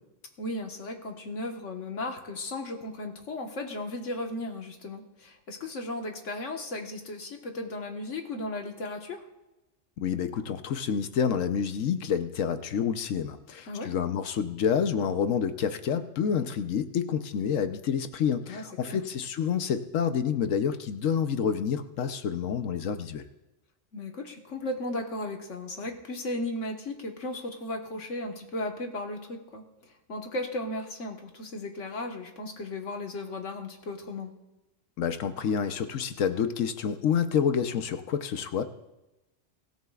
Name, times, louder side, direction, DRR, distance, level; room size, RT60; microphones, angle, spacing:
voice 1, 0.4-9.2 13.7-13.9 18.5-19.0 23.9-34.3, left 2 dB, 75° left, 3 dB, 1.7 m, -36 dB
voice 2, 10.0-23.2 35.0-38.6, left 7 dB, 90° left, 9 dB, 1.2 m, -28 dB
23.5 x 13.5 x 2.4 m, 0.99 s
omnidirectional pair, 1.3 m